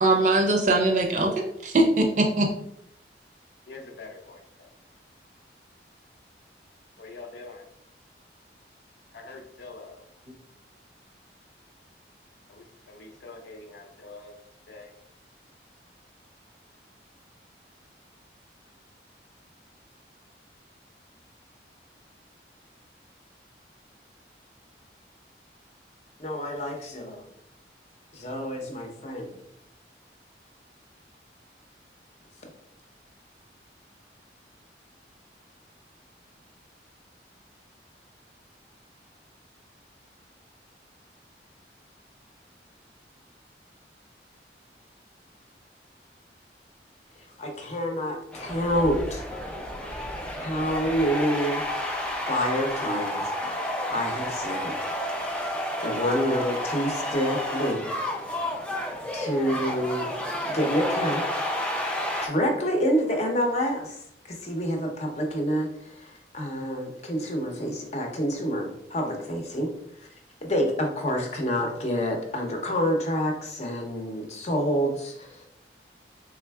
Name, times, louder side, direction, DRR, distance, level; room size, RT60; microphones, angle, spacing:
voice 1, 0.0-2.5, right 2 dB, 45° right, 2 dB, 0.6 m, -21 dB
voice 2, 3.7-4.7 7.0-7.7 9.1-10.0 12.5-14.4 14.7-14.9, left 3 dB, 75° left, 2 dB, 0.6 m, -44 dB
voice 3, 26.2-27.2 28.1-29.3 47.4-49.2 50.4-51.6 52.3-53.2 53.9-54.7 55.8-57.9 59.1-60.1 60.5-61.2 62.0-64.0 64.4-69.7 70.4-75.5, equal, 40° left, 2 dB, 0.7 m, -27 dB
sound 1, 48.3-62.3, left 1 dB, 5° left, 0.4 m, -31 dB
3.6 x 3.4 x 2.3 m, 0.75 s
head